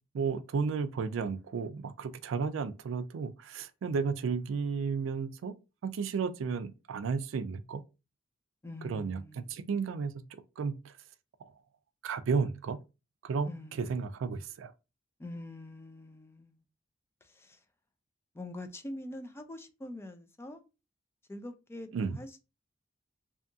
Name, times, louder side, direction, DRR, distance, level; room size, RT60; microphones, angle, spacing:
voice 1, 0.1-5.5 5.8-7.8 8.8-9.2 9.5-10.1 10.6-11.0 11.4-11.5 12.0-12.8 13.2-14.7 21.9-22.2, right 5 dB, 75° right, 0.3 m, -33 dB
voice 2, 8.6-9.6 13.5-13.9 15.2-16.6 17.2-17.6 18.3-20.6 21.3-22.4, left 1 dB, 15° left, 0.3 m, -44 dB
2.7 x 2.6 x 2.3 m
head